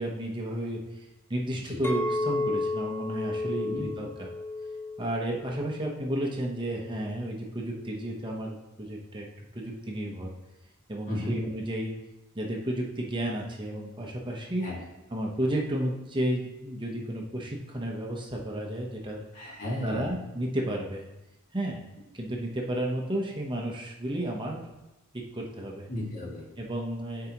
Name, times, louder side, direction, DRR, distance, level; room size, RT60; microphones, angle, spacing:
voice 1, 0.0-4.3 5.0-9.3 9.5-10.3 10.9-11.9 12.3-14.7 15.1-19.2 19.8-21.1 21.5-21.8 22.1-24.6 25.1-25.9 26.6-27.3, right 1 dB, 25° right, -1 dB, 0.9 m, -32 dB
voice 2, 1.5-1.8 3.6-3.8 11.1-11.4 14.6-14.8 19.3-20.1 25.9-26.4, left 1 dB, 40° left, -4 dB, 2.0 m, -34 dB
Chink clink, 1.8-6.2 6.6-7.0, left 2 dB, 10° left, 0.6 m, -32 dB
13.5 x 4.7 x 3.0 m, 0.99 s
head